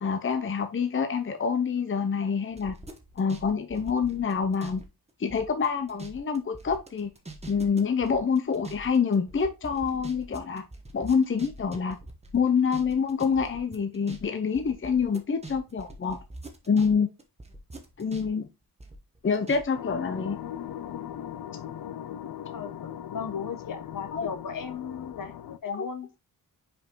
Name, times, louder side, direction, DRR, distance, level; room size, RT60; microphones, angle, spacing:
voice 1, 0.0-2.8 3.2-4.8 5.2-7.1 7.5-10.7 10.9-12.0 12.3-16.2 16.7-17.1 18.0-18.5 19.2-20.4 24.1-24.3 25.7-25.9, left 6 dB, 35° left, 0.6 m, -26 dB
sound 1, 2.5-4.8 5.1-16.9 17.2-19.6 19.9-20.0, right 2 dB, 20° right, 1.0 m, -44 dB
sound 2, 19.7-25.6, left 10 dB, 90° left, 0.5 m, -39 dB
voice 2, 22.5-26.2, left 6 dB, 65° left, 1.0 m, -37 dB
5.5 x 5.2 x 3.7 m
wide cardioid pair, 180°, 36 cm